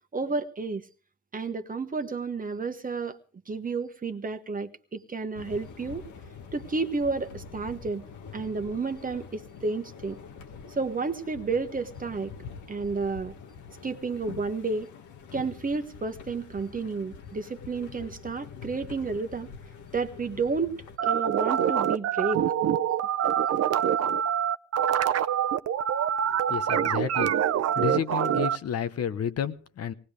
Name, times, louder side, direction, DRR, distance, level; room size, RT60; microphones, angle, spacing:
voice 1, 0.1-0.8 1.3-3.2 3.5-6.0 6.5-8.0 8.3-10.2 10.7-12.3 12.7-13.3 13.8-14.9 15.3-19.5 19.9-22.4, right 4 dB, 30° right, 8 dB, 1.2 m, -31 dB
sound 1, 5.3-21.0, left 6 dB, 75° left, 1.6 m, -45 dB
sound 2, 21.0-28.6, right 9 dB, 55° right, 0.7 m, -25 dB
voice 2, 26.5-27.3 27.8-29.9, left 8 dB, 55° left, 11 dB, 1.0 m, -31 dB
19.0 x 18.5 x 3.3 m, 0.37 s
cardioid pair, 90°, 30 cm